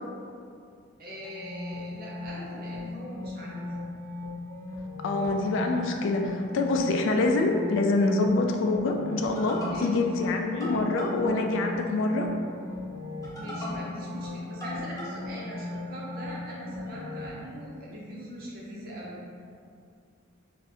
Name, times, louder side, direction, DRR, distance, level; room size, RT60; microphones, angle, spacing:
voice 1, 1.0-3.8 9.6-9.9 13.4-19.2, equal, 50° right, -5 dB, 0.7 m, -41 dB
sound 1, 1.2-17.3, left 2 dB, 15° left, 0.6 m, -37 dB
voice 2, 5.0-12.3, left 2 dB, 65° left, 3 dB, 0.3 m, -25 dB
2.6 x 2.5 x 3.3 m, 2.4 s
head